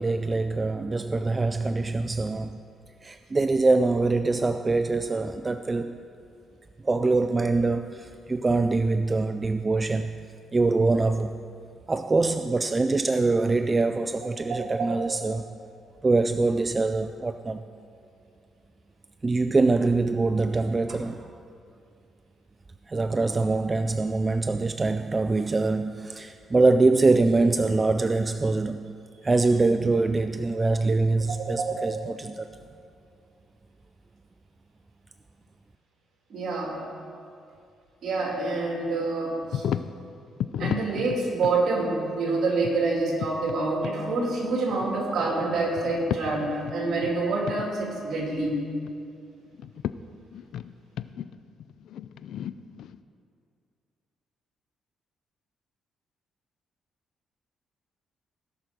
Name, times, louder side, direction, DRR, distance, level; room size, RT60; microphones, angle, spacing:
voice 1, 0.0-2.6 3.0-6.0 6.8-10.2 10.5-11.4 11.9-15.4 16.0-17.6 19.2-21.3 22.9-28.9 29.2-32.5, right 3 dB, 25° right, 9 dB, 0.3 m, -24 dB
voice 2, 14.5-15.1 31.4-31.9 36.3-36.8 38.0-39.6 40.6-48.6, right 3 dB, 65° right, -1 dB, 2.8 m, -27 dB
sound 1, 39.5-40.0 40.4-41.6 42.6-43.6 43.8-44.0 44.7-45.5 45.8-47.2 47.5-47.7 48.0-49.0 49.5-49.9 50.3-53.0, left 9 dB, 75° left, 0.3 m, -33 dB
17.5 x 6.1 x 5.2 m, 2.4 s
cardioid pair, 90°, 0 cm